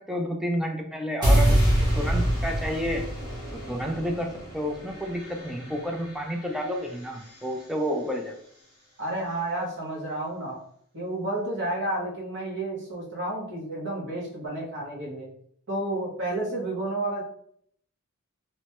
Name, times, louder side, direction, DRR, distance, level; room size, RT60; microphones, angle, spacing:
voice 1, 0.1-3.1 3.5-8.4, equal, ahead, 1 dB, 0.3 m, -30 dB
sound 1, 1.2-7.4, equal, 20° right, 0.9 m, -26 dB
voice 2, 9.0-10.6 10.9-15.3 15.7-17.2, right 1 dB, 55° right, -3 dB, 0.9 m, -31 dB
3.0 x 2.1 x 2.9 m, 0.66 s
head